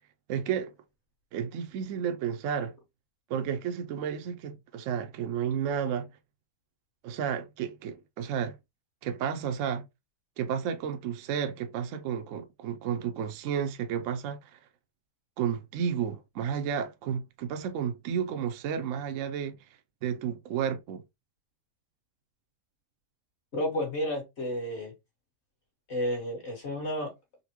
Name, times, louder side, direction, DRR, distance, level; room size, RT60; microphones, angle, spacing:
voice 1, 0.3-0.7 1.3-2.7 3.3-6.1 7.0-8.6 9.0-9.8 10.4-14.6 15.4-19.6 20.0-21.0, right 8 dB, 65° right, 0.8 m, -32 dB
voice 2, 23.5-24.9 25.9-27.1, left 1 dB, 45° left, 1.6 m, -31 dB
4.0 x 2.2 x 2.9 m
omnidirectional pair, 1.6 m